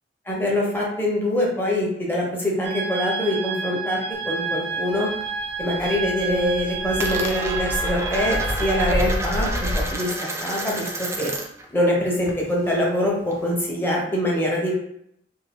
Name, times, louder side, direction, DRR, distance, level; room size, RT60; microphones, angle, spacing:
voice 1, 0.3-5.1 5.6-11.3 11.7-14.7, left 1 dB, 10° left, -3 dB, 0.7 m, -24 dB
sound 1, 2.6-8.9, right 4 dB, 75° right, 0.6 m, -30 dB
Coin (dropping), 4.1-5.3 5.6-6.1 6.4-11.7 11.9-13.6, right 1 dB, 15° right, 0.3 m, -32 dB
sound 2, 5.6-9.9, left 1 dB, 85° left, 0.5 m, -29 dB
2.6 x 2.5 x 3.3 m, 0.71 s
head